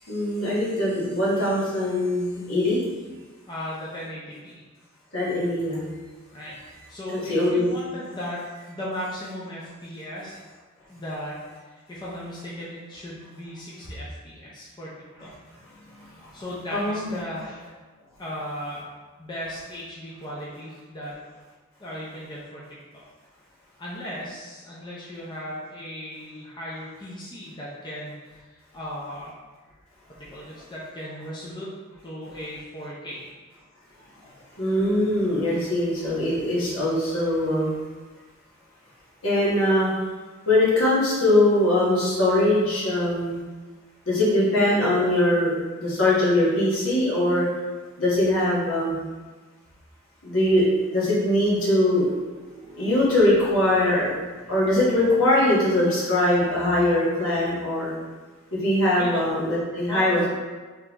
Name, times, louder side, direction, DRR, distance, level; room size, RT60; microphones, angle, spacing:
voice 1, 0.1-2.8 5.1-5.9 7.1-7.7 16.7-17.1 34.6-37.8 39.2-39.9 40.5-43.4 44.1-47.4 48.0-49.0 50.2-52.1 52.7-54.1 54.5-58.0 58.5-60.3, left 1 dB, 70° left, -7 dB, 1.3 m, -22 dB
voice 2, 3.5-4.5 6.3-6.6 6.9-10.4 10.9-11.4 11.7-15.3 16.3-17.7 18.2-18.9 19.2-21.2 21.8-22.8 23.8-29.3 30.2-31.7 32.0-33.3 59.0-59.3 59.9-60.2, equal, 20° left, -7 dB, 0.6 m, -36 dB
3.7 x 3.3 x 3.0 m, 1.3 s
head